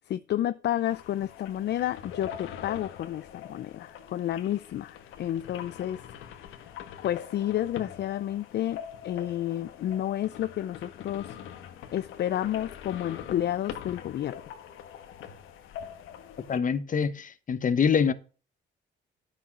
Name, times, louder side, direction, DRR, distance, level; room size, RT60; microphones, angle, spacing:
voice 1, 0.0-6.6 7.0-11.4 11.9-14.4, left 12 dB, 60° left, 0.5 m, -31 dB
sound 1, 0.8-16.6, left 9 dB, 85° left, 1.3 m, -43 dB
voice 2, 16.5-18.1, left 6 dB, 40° left, 1.0 m, -25 dB
9.8 x 6.2 x 6.0 m
cardioid pair, 90°, 20 cm